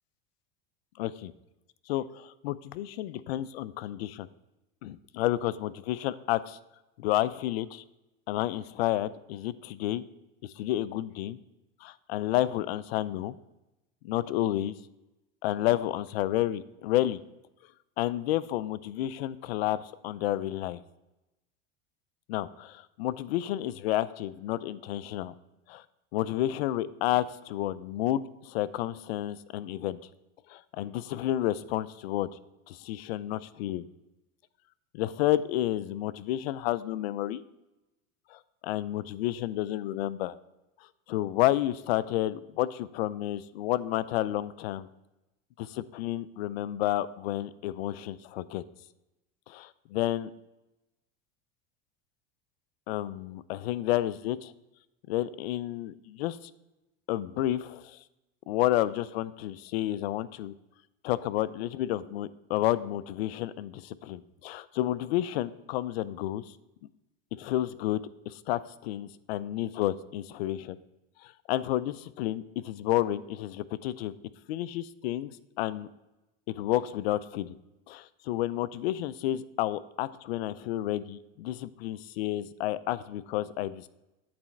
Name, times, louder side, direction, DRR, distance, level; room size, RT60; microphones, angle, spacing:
voice 1, 1.0-1.3 1.9-4.3 4.8-6.6 7.0-7.8 8.3-10.0 10.4-11.4 11.8-13.4 14.0-14.7 15.4-17.2 18.0-20.8 22.3-25.3 25.7-25.8 26.1-30.0 30.5-32.3 32.7-33.9 34.9-37.4 38.3-40.3 41.1-44.9 45.6-48.6 49.5-50.3 52.9-54.5 55.1-56.5 57.1-58.0 58.5-60.5 61.0-66.4 67.3-70.8 71.2-74.1 74.5-75.9 76.5-77.6 77.9-83.9, left 14 dB, 85° left, 16 dB, 0.4 m, -30 dB
8.7 x 4.1 x 4.4 m, 0.96 s
supercardioid pair, 120°, 30 cm